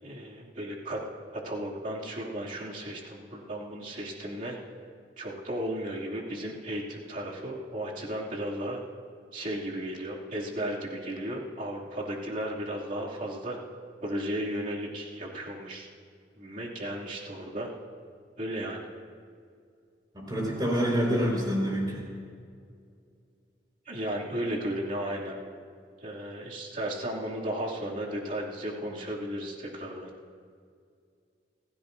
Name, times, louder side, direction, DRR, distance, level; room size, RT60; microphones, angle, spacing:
voice 1, 0.0-1.0 1.3-4.6 5.2-8.8 9.3-13.6 14.0-15.9 16.4-17.7 18.4-18.9 23.8-25.4 26.0-30.1, right 1 dB, 45° right, -4 dB, 2.6 m, -34 dB
voice 2, 20.1-22.0, equal, 25° right, -2 dB, 4.9 m, -27 dB
28.5 x 15.5 x 2.7 m, 2.2 s
head